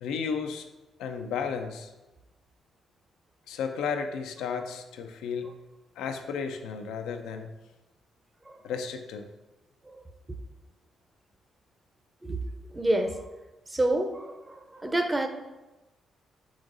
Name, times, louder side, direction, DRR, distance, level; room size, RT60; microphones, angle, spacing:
voice 1, 0.0-0.7 1.0-1.9 3.5-5.5 6.0-7.5 8.6-9.2, left 6 dB, 80° left, 6 dB, 0.4 m, -33 dB
voice 2, 12.7-13.3 13.7-15.3, right 1 dB, 25° right, 6 dB, 0.6 m, -28 dB
4.9 x 3.8 x 2.6 m, 1.1 s
supercardioid pair, 50°, 0 cm